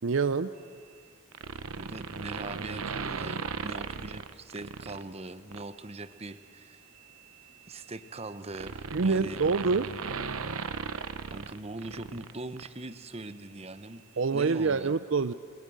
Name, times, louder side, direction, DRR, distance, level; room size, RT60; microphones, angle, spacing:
voice 1, 0.0-0.5 8.9-9.9 14.2-15.3, right 4 dB, 65° right, 13 dB, 0.5 m, -26 dB
sound 1, 1.3-5.0 5.5-5.7 6.9-12.3 12.6-12.7, right 5 dB, 85° right, 0.9 m, -37 dB
voice 2, 1.8-6.8 7.7-9.4 11.3-14.0 14.3-15.0, right 2 dB, 30° right, 12 dB, 0.9 m, -41 dB
29.5 x 21.0 x 7.6 m, 2.1 s
head